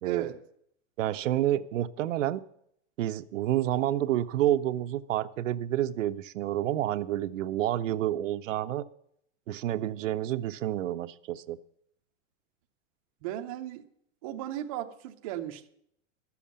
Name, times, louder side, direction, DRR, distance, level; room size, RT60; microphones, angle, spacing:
voice 1, 0.0-0.4 13.2-13.9 14.2-15.7, right 12 dB, 30° right, 0.6 m, -36 dB
voice 2, 1.0-2.4 3.0-8.8 9.5-11.6, right 12 dB, 80° right, 0.8 m, -29 dB
13.0 x 7.2 x 8.6 m
supercardioid pair, 175°, 37 cm